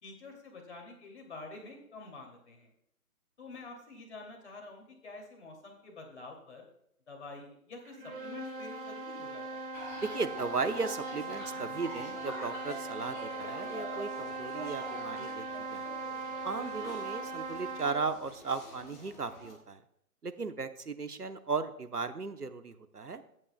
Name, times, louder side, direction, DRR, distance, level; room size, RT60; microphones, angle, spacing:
voice 1, 0.0-2.7 3.4-6.6 7.1-9.7, left 3 dB, 45° left, 2 dB, 2.7 m, -48 dB
sound 1, 7.9-18.2, right 3 dB, 35° right, 1.8 m, -40 dB
sound 2, 9.7-19.5, left 1 dB, 15° left, 1.7 m, -46 dB
voice 2, 10.0-15.5 15.7-15.9 16.4-19.8 20.2-23.2, right 4 dB, 85° right, 10 dB, 1.0 m, -36 dB
15.5 x 8.8 x 2.2 m, 0.74 s
figure-of-eight pair, 140°, 45 cm